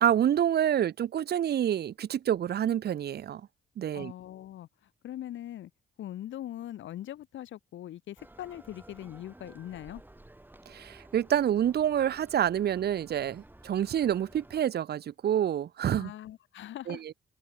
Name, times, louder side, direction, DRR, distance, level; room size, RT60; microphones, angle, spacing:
voice 1, 0.0-3.4 3.8-4.1 10.7-16.1 16.9-17.1, right 10 dB, 55° right, 0.8 m, -27 dB
voice 2, 3.9-4.7 5.0-5.7 6.0-10.0 16.0-17.0, left 12 dB, 70° left, 1.7 m, -41 dB
sound 1, 8.2-14.6, right 1 dB, 10° right, 5.0 m, -54 dB
open air
cardioid pair, 90°, 20 cm